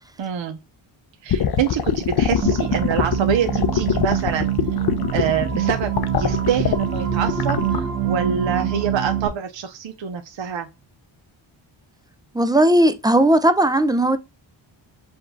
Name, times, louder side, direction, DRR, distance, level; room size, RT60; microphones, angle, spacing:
voice 1, 0.2-0.6 1.2-4.5 5.1-10.7, right 8 dB, 65° right, 0.7 m, -26 dB
sound 1, 1.3-7.8, left 8 dB, 50° left, 0.6 m, -22 dB
sound 2, 2.4-9.3, right 9 dB, 45° right, 1.2 m, -25 dB
voice 2, 12.3-14.2, right 1 dB, 10° right, 0.3 m, -16 dB
5.2 x 2.3 x 3.8 m
cardioid pair, 80°, 49 cm